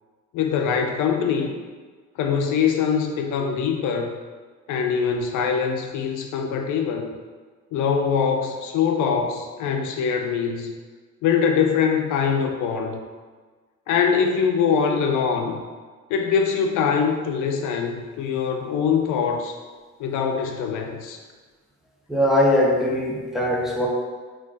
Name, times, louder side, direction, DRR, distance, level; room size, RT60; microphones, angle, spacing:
voice 1, 0.3-1.6 2.2-4.1 4.7-7.1 7.7-10.7 11.2-13.0 13.9-15.6 16.1-19.6 20.0-21.2, left 6 dB, 85° left, 3 dB, 0.5 m, -23 dB
voice 2, 22.1-23.9, left 1 dB, ahead, -4 dB, 0.6 m, -20 dB
2.4 x 2.3 x 3.8 m, 1.4 s
cardioid pair, 90°, 30 cm